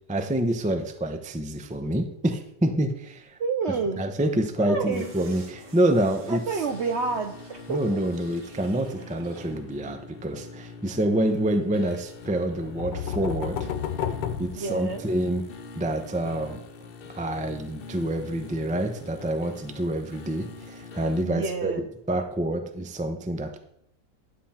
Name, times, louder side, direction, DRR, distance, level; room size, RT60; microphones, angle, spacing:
voice 1, 0.1-3.4 4.0-6.6 7.7-13.7 14.4-15.4 15.8-16.6 17.1-23.6, right 1 dB, 10° right, 6 dB, 0.3 m, -27 dB
voice 2, 3.4-4.0 4.7-5.1 6.3-8.0 14.6-15.1 21.2-21.8, right 4 dB, 65° right, 5 dB, 0.7 m, -29 dB
sound 1, 4.2-21.2, left 4 dB, 60° left, 0.6 m, -44 dB
sound 2, 4.9-9.7 10.0-10.1, right 5 dB, 90° right, 1.9 m, -50 dB
sound 3, 12.4-15.4, left 8 dB, 85° left, 1.4 m, -32 dB
11.0 x 7.7 x 4.4 m, 0.73 s
omnidirectional pair, 1.8 m